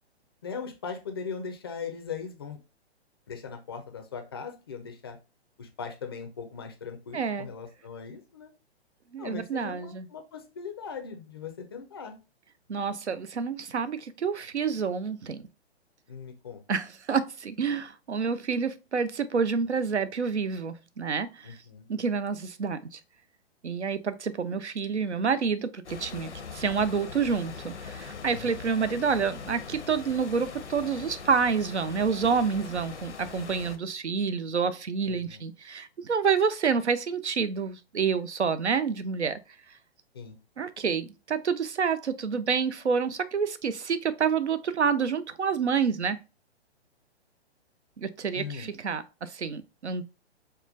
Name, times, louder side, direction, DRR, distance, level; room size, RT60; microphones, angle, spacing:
voice 1, 0.4-2.6 3.3-5.2 5.6-8.5 9.2-12.2 16.1-16.6 21.4-21.9 28.3-28.6 35.1-35.4 40.1-40.3 48.3-48.7, left 6 dB, 25° left, 0.3 m, -39 dB
voice 2, 7.1-7.5 9.1-10.1 12.7-15.4 16.7-21.6 21.9-23.0 23.6-39.4 40.6-46.2 48.0-50.0, right 6 dB, 90° right, 0.5 m, -28 dB
sound 1, 25.8-33.8, left 5 dB, 90° left, 0.6 m, -41 dB
4.8 x 2.2 x 2.4 m
figure-of-eight pair, 125°, 33 cm